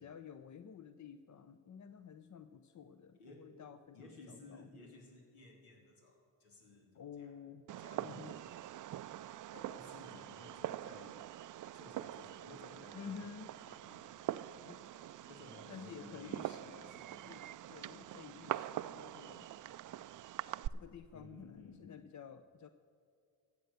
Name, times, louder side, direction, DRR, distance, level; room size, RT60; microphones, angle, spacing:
voice 1, 0.0-4.7 6.9-7.6 8.0-8.3 12.9-13.5 14.6-14.8 15.7-19.5 20.7-22.7, left 7 dB, 35° left, 11 dB, 0.6 m, -51 dB
voice 2, 3.1-3.5 3.9-6.9 7.2-7.3 7.8-8.5 9.5-11.2 11.7-13.2 13.6-14.3 15.3-17.1 21.1-21.8, left 2 dB, 80° left, 0 dB, 3.1 m, -57 dB
Fireworks, 7.7-20.7, right 12 dB, 40° right, 0.4 m, -44 dB
14.5 x 8.1 x 6.7 m, 2.4 s
supercardioid pair, 55°, 50 cm